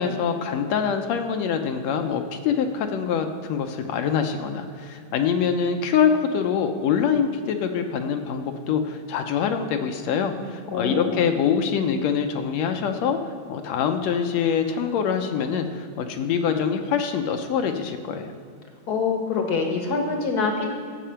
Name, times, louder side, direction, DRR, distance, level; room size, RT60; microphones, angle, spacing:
voice 1, 0.0-13.2 13.5-18.3, left 7 dB, 75° left, 6 dB, 1.8 m, -24 dB
voice 2, 10.7-11.3 18.9-20.7, left 4 dB, 50° left, 2 dB, 1.3 m, -25 dB
12.5 x 7.7 x 5.7 m, 2.3 s
omnidirectional pair, 3.3 m